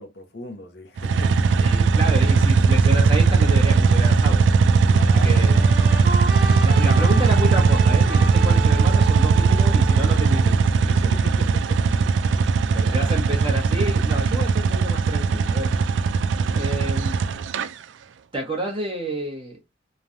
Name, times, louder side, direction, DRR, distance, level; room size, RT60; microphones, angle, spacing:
voice 1, 0.0-1.3 4.9-5.4 11.1-11.8 12.9-13.0, left 1 dB, 65° left, 0.7 m, -38 dB
sound 1, 1.0-17.7, right 4 dB, 85° right, 0.4 m, -18 dB
voice 2, 1.6-4.4 5.1-5.6 6.6-11.1 12.7-15.7 16.5-17.3 18.3-19.6, right 1 dB, 30° right, 1.0 m, -29 dB
sound 2, 5.3-10.8, right 4 dB, 65° right, 1.1 m, -32 dB
3.1 x 2.3 x 2.6 m
head